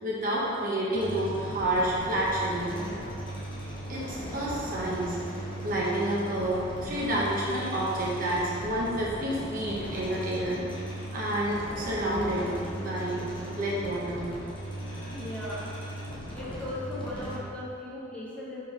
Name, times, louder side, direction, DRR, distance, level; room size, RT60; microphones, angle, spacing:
voice 1, 0.0-2.7 3.9-5.2 5.6-12.5 12.7-13.2 13.5-14.3, right 1 dB, 45° right, -5 dB, 1.0 m, -29 dB
sound 1, 0.9-17.4, right 1 dB, 25° left, 1.1 m, -38 dB
voice 2, 14.8-15.7 16.3-18.6, left 1 dB, 5° left, -9 dB, 1.3 m, -38 dB
4.6 x 4.4 x 4.9 m, 2.5 s
head